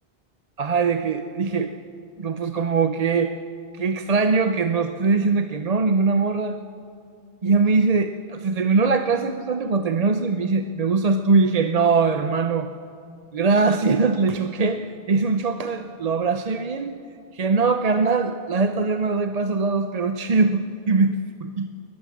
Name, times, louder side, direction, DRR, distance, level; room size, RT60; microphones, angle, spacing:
voice 1, 0.6-1.7 2.2-3.4 3.7-6.6 7.4-12.7 13.3-16.9 17.3-21.7, right 4 dB, 45° right, 8 dB, 0.7 m, -22 dB
22.0 x 19.5 x 7.2 m, 2.5 s
omnidirectional pair, 1.0 m